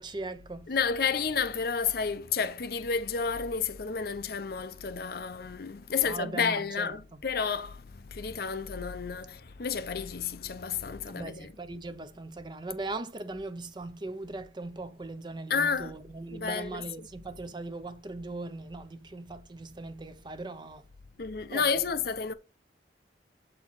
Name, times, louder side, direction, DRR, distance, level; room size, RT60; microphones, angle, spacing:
voice 1, 0.0-0.7 6.0-7.0 11.1-20.8 21.5-21.7, right 2 dB, 25° right, 0.6 m, -39 dB
voice 2, 0.7-11.5 15.5-15.9 16.3-17.1 21.2-22.3, left 6 dB, 60° left, 0.6 m, -31 dB
7.3 x 4.4 x 3.9 m
head